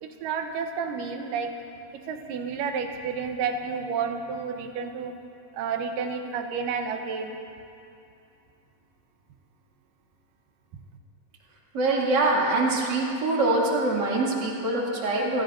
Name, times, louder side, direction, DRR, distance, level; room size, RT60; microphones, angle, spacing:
voice 1, 0.0-1.5 2.1-5.1 5.5-7.4, right 5 dB, 90° right, 4 dB, 2.6 m, -30 dB
voice 2, 11.7-15.4, right 2 dB, 35° right, -4 dB, 2.6 m, -24 dB
28.5 x 15.5 x 2.6 m, 2.6 s
omnidirectional pair, 3.8 m